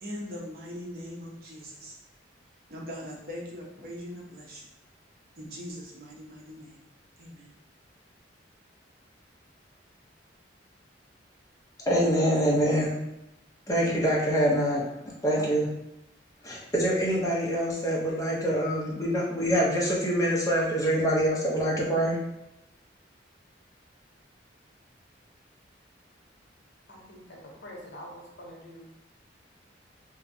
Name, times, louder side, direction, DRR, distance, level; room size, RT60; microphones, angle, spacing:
voice 1, 0.0-2.0 2.7-4.6 5.4-6.8 7.2-7.5, equal, 55° right, -3 dB, 0.7 m, -41 dB
voice 2, 11.9-13.0 13.7-14.8 15.2-15.7 16.4-22.2, equal, 20° left, -4 dB, 0.6 m, -25 dB
voice 3, 26.9-28.9, equal, 75° left, -2 dB, 0.8 m, -45 dB
2.8 x 2.2 x 2.6 m, 0.87 s
head